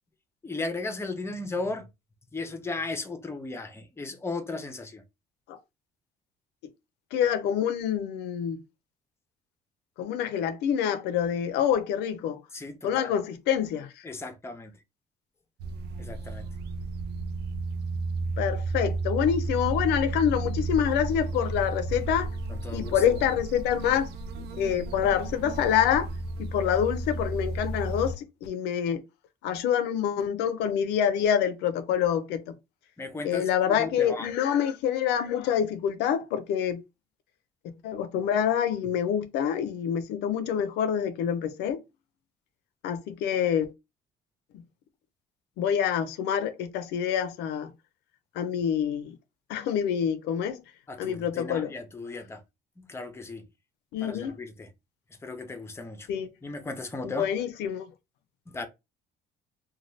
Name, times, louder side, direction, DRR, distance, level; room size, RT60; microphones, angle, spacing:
voice 1, 0.4-1.9 2.3-5.0 12.5-13.1 14.0-14.8 16.0-16.4 22.5-23.2 33.0-34.3 50.9-52.4 52.9-53.5 54.0-54.7 55.2-56.1 56.4-57.3 58.5-58.7, left 3 dB, 15° left, 0.6 m, -36 dB
voice 2, 7.1-8.6 10.0-12.4 12.8-14.1 18.4-22.3 22.7-24.1 24.4-26.1 26.4-29.0 29.4-32.5 33.2-36.8 37.6-41.8 42.8-43.7 44.5-44.6 45.6-47.7 48.3-49.1 49.5-50.6 51.0-51.7 53.9-54.3 56.1-56.3 57.0-57.9, left 9 dB, 85° left, 0.5 m, -26 dB
sound 1, 15.6-28.1, right 3 dB, 75° right, 0.5 m, -33 dB
2.6 x 2.3 x 3.1 m
cardioid pair, 110°, 17 cm